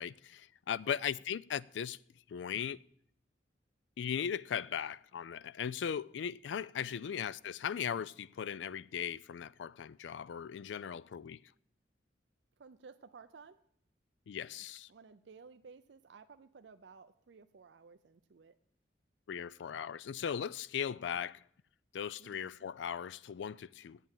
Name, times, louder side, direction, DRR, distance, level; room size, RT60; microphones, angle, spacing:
voice 1, 0.0-2.0 2.3-2.8 4.0-11.4 14.3-14.9 19.3-21.4 21.9-24.0, left 8 dB, 90° left, 0.4 m, -38 dB
voice 2, 0.8-1.2 6.8-7.3 12.6-13.6 14.5-18.6 22.2-22.7, right 5 dB, 80° right, 0.5 m, -56 dB
8.9 x 8.4 x 7.3 m
head